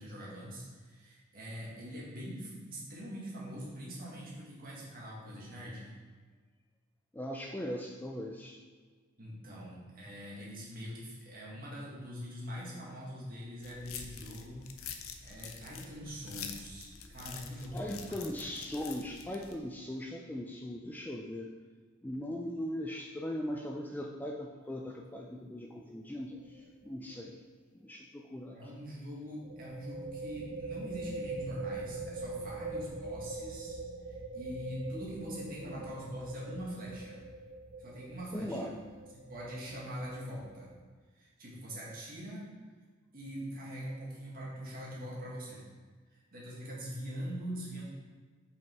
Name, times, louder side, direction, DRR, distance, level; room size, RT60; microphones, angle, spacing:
voice 1, 0.0-5.9 9.2-14.6 15.2-18.3 28.5-33.8 34.1-37.2 37.8-38.8 39.3-40.7 41.1-42.4 43.1-45.6 46.1-47.8, equal, 45° right, -5 dB, 1.9 m, -43 dB
voice 2, 7.1-8.6 17.2-17.4 17.7-21.5 22.0-27.4 27.8-28.7 35.7-35.9 38.3-38.8, left 1 dB, 10° left, 1 dB, 0.4 m, -39 dB
sound 1, 13.6-19.6, left 7 dB, 85° left, 0.6 m, -46 dB
sound 2, 26.3-26.6 26.9-27.0 29.4-40.8, right 3 dB, 70° right, 0.8 m, -43 dB
5.7 x 5.3 x 4.5 m, 1.4 s
head